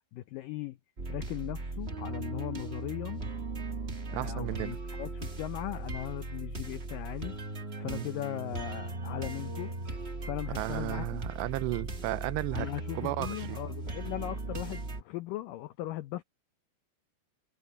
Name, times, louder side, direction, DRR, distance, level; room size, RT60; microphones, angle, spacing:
voice 1, 0.1-0.8 1.1-3.2 4.1-7.3 7.8-9.7 10.2-11.2 12.5-16.2, left 15 dB, 80° left, 1.9 m, -38 dB
sound 1, 1.0-15.0, right 2 dB, 60° right, 0.6 m, -38 dB
voice 2, 4.1-4.8 7.9-8.1 10.6-12.7 13.0-13.6, right 18 dB, 85° right, 2.9 m, -34 dB
omnidirectional pair, 4.8 m